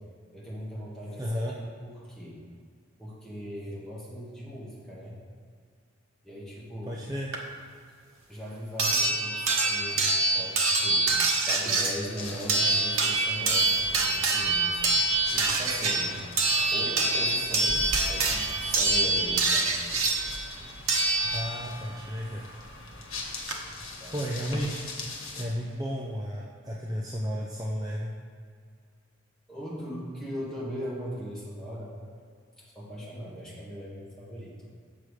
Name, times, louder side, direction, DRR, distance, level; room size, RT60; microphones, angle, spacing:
voice 1, 0.3-1.3 1.8-2.4 3.0-5.1 6.2-7.0 8.3-11.1 11.5-14.8 15.3-16.1 16.7-19.9 20.6-20.9 24.0-24.2 29.5-32.0 32.6-34.7, equal, 5° left, -8 dB, 1.8 m, -39 dB
voice 2, 1.2-1.6 6.9-7.3 21.2-22.4 24.1-24.8 25.3-28.1, equal, 20° right, -4 dB, 0.6 m, -33 dB
sound 1, 7.3-7.4 8.8-21.8 23.1-23.2 23.5-23.6, right 3 dB, 85° right, 1.0 m, -25 dB
sound 2, 12.1-25.4, left 2 dB, 80° left, 1.4 m, -41 dB
7.3 x 6.3 x 4.9 m, 2.1 s
head